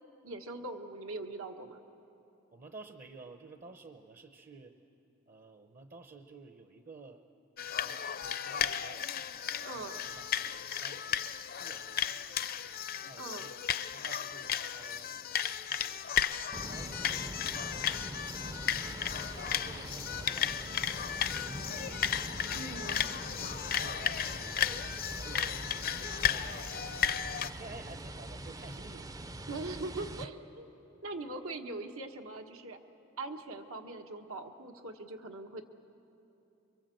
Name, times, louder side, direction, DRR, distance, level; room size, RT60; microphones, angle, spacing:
voice 1, 0.2-1.8 9.6-10.0 13.2-13.5 18.7-19.0 22.5-23.0 29.5-30.7 31.0-32.8 33.2-35.6, right 2 dB, 80° right, 4 dB, 1.6 m, -41 dB
voice 2, 2.5-4.7 5.3-7.2 7.7-9.1 9.6-12.7 13.1-13.6 13.9-16.1 16.6-17.9 18.3-18.9 19.5-21.9 23.3-29.1, right 3 dB, 40° right, 6 dB, 0.8 m, -53 dB
sound 1, 7.6-27.5, left 8 dB, 45° left, 0.5 m, -34 dB
sound 2, 16.5-30.2, right 1 dB, 15° right, 0.5 m, -43 dB
26.0 x 24.0 x 7.8 m, 2.9 s
head